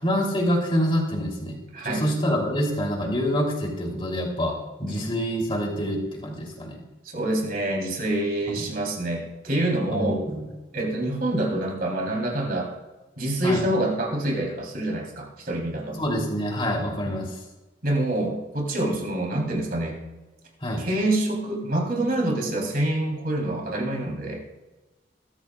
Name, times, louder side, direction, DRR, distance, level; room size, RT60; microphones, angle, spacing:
voice 1, 0.0-4.5 4.8-6.8 8.5-8.6 9.9-10.5 13.4-13.6 15.9-17.4 20.6-20.8, equal, 25° left, -1 dB, 3.4 m, -26 dB
voice 2, 1.7-2.0 4.8-5.1 7.0-10.2 10.7-12.7 13.2-16.0 17.1-17.2 17.8-20.0 20.8-24.4, right 1 dB, 50° right, -1 dB, 3.7 m, -26 dB
21.5 x 13.0 x 2.5 m, 1.1 s
head